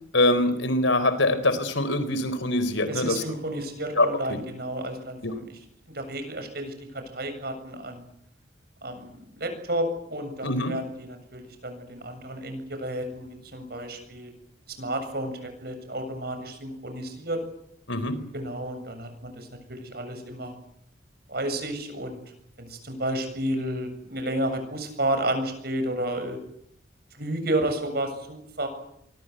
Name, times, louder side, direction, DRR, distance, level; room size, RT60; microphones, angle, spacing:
voice 1, 0.1-3.2 4.0-4.4 5.2-5.3 10.4-10.7 17.9-18.1, left 2 dB, 80° left, 13 dB, 4.3 m, -24 dB
voice 2, 2.9-5.5 5.9-8.1 8.8-14.4 14.8-17.4 18.3-20.5 21.3-22.2 22.6-26.4 27.1-28.7, right 1 dB, 50° right, 7 dB, 7.5 m, -31 dB
26.5 x 24.0 x 8.1 m, 0.72 s
head